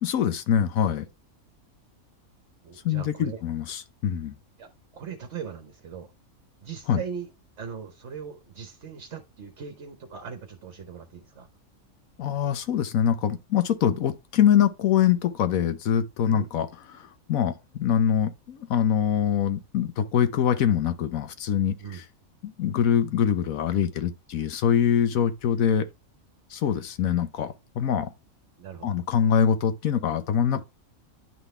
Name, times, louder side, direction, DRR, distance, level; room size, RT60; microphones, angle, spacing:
voice 1, 0.0-1.1 2.8-4.3 6.9-7.0 12.2-22.0 22.4-25.9 26.5-28.1 28.8-30.6, left 9 dB, 75° left, 1.2 m, -24 dB
voice 2, 2.6-3.4 4.6-6.1 6.6-7.3 7.6-11.5 16.3-16.5 21.8-22.0 28.6-29.0 30.5-30.6, right 7 dB, 55° right, 1.2 m, -39 dB
10.5 x 3.9 x 3.2 m
omnidirectional pair, 1.5 m